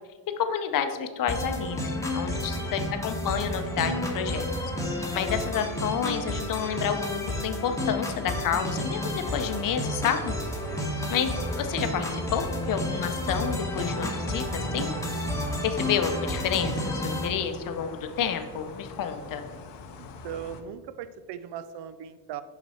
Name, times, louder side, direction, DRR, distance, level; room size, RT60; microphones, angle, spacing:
voice 1, 0.4-4.5 5.1-10.4 11.1-15.0 15.6-19.4, left 8 dB, 50° left, 8 dB, 0.7 m, -30 dB
sound 1, 1.3-17.3, left 1 dB, 5° left, 1.0 m, -31 dB
voice 2, 2.3-2.7 10.7-10.9 20.2-22.4, right 9 dB, 80° right, 13 dB, 0.5 m, -39 dB
sound 2, 9.3-20.6, left 5 dB, 85° left, 0.8 m, -44 dB
5.9 x 5.9 x 4.2 m, 1.4 s
cardioid pair, 155°, 41 cm